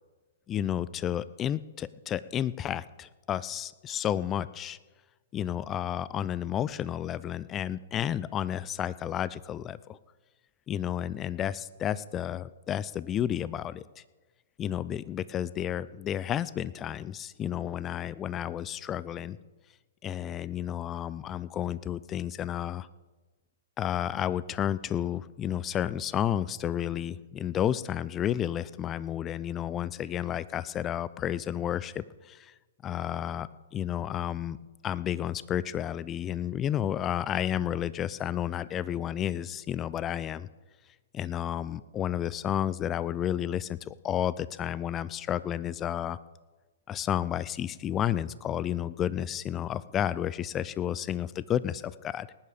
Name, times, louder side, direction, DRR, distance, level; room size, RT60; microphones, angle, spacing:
voice 1, 0.5-4.8 5.3-10.0 10.7-14.0 14.6-19.4 20.0-22.9 23.8-32.5 32.8-34.6 34.8-40.5 41.1-46.2 46.9-52.3, left 10 dB, 25° left, 18 dB, 0.5 m, -31 dB
19.0 x 10.0 x 5.1 m, 1.3 s
figure-of-eight pair, 115°, 0 cm